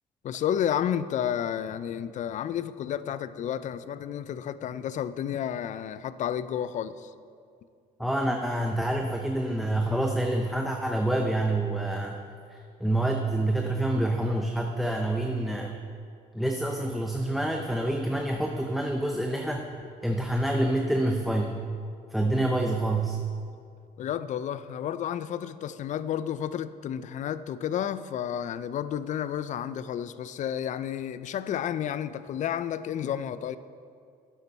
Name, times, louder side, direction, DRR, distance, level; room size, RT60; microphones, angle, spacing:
voice 1, 0.2-7.1 24.0-33.6, left 9 dB, 45° left, 14 dB, 0.4 m, -31 dB
voice 2, 8.0-12.2 12.5-15.8 16.3-19.7 20.0-21.6 22.1-23.2, right 1 dB, ahead, 2 dB, 0.7 m, -27 dB
11.5 x 8.9 x 4.1 m, 2.3 s
cardioid pair, 110°, 17 cm